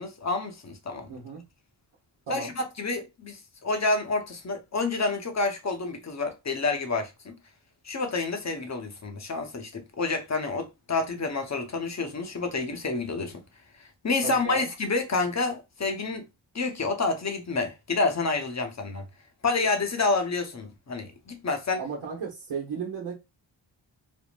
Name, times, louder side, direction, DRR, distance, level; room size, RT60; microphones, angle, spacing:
voice 1, 0.0-1.2 2.3-7.4 7.8-13.4 13.8-16.2 16.5-19.0 19.4-21.8, left 3 dB, 35° left, 0.9 m, -29 dB
voice 2, 1.1-1.4 2.3-2.5 14.2-14.7 21.8-23.2, right 5 dB, 80° right, 1.1 m, -35 dB
3.5 x 2.1 x 2.4 m
cardioid pair, 60°, 48 cm